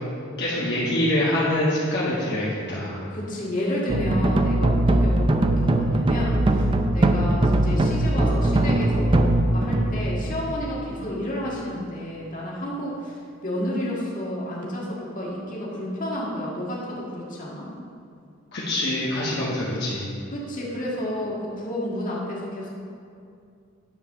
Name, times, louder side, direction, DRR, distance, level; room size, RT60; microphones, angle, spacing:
voice 1, 0.4-3.0 18.5-20.1, left 1 dB, 55° left, -7 dB, 1.5 m, -25 dB
voice 2, 3.1-6.7 6.9-17.7 20.3-22.7, left 1 dB, 40° left, -4 dB, 2.0 m, -31 dB
Davul Left Percussion Bass Drum, 3.9-11.2, right 1 dB, 25° right, 0.5 m, -21 dB
10.0 x 4.9 x 6.5 m, 2.4 s
head